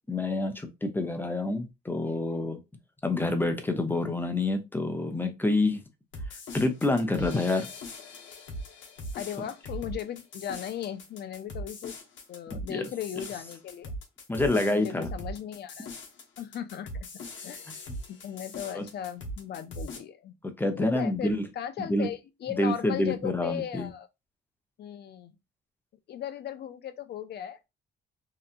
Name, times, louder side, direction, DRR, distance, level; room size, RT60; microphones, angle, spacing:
voice 1, 0.1-2.6 3.0-5.8 6.5-7.7 12.5-12.8 14.3-15.1 18.7-18.8 20.6-21.4 21.9-22.1 22.6-23.9, left 2 dB, 10° left, 0.6 m, -27 dB
sound 1, 6.1-20.0, equal, 70° left, 0.8 m, -40 dB
voice 2, 9.1-12.0 12.3-13.9 14.6-15.9 16.4-17.1 17.4-17.7 18.1-20.3 20.8-24.1 24.8-25.3 26.1-27.7, left 9 dB, 55° left, 0.5 m, -37 dB
2.8 x 2.2 x 2.4 m
cardioid pair, 90°, 20 cm